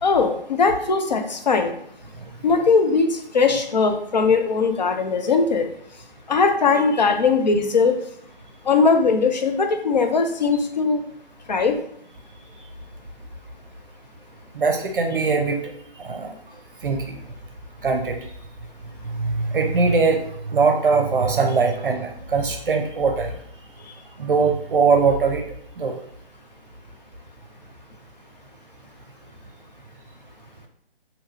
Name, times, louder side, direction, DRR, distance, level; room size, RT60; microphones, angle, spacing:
voice 1, 0.0-1.7 2.4-5.7 6.3-8.0 8.7-11.0 11.5-11.8, left 4 dB, 45° left, 6 dB, 0.4 m, -19 dB
voice 2, 14.5-15.6 16.0-16.3 16.8-17.2 17.8-18.2 19.1-23.3 24.2-25.4 25.8-26.0, right 4 dB, 60° right, 3 dB, 0.6 m, -21 dB
3.4 x 2.7 x 2.7 m, 0.68 s
figure-of-eight pair, 145°, 30 cm